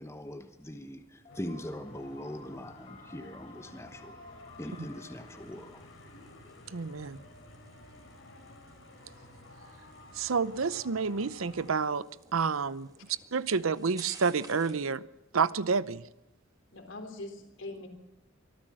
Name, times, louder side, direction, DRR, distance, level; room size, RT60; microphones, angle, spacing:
voice 1, 0.0-4.2 4.6-5.9, equal, 15° left, 1.0 m, -41 dB
sound 1, 1.3-11.8, left 1 dB, 80° left, 5.0 m, -52 dB
sound 2, 1.3-7.1, left 3 dB, 30° left, 2.3 m, -55 dB
sound 3, 4.2-14.9, right 4 dB, 20° right, 2.5 m, -56 dB
voice 2, 6.7-7.2 10.1-12.0 12.3-12.9 13.3-15.0 15.3-16.0, right 5 dB, 90° right, 0.7 m, -29 dB
voice 3, 16.7-17.9, left 2 dB, 65° left, 3.7 m, -42 dB
24.0 x 14.0 x 7.7 m
head